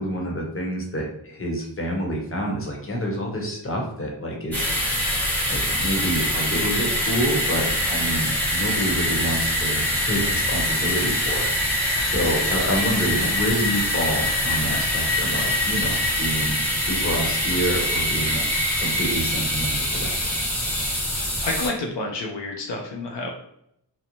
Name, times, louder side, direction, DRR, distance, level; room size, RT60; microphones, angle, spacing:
voice 1, 0.0-4.7 5.5-18.5 18.8-20.4, equal, 30° left, -1 dB, 0.8 m, -28 dB
sound 1, 4.5-21.7, left 1 dB, 5° left, 0.8 m, -24 dB
voice 2, 21.4-23.3, left 2 dB, 70° left, 0 dB, 0.5 m, -29 dB
2.6 x 2.0 x 2.9 m, 0.75 s
wide cardioid pair, 70°, 44 cm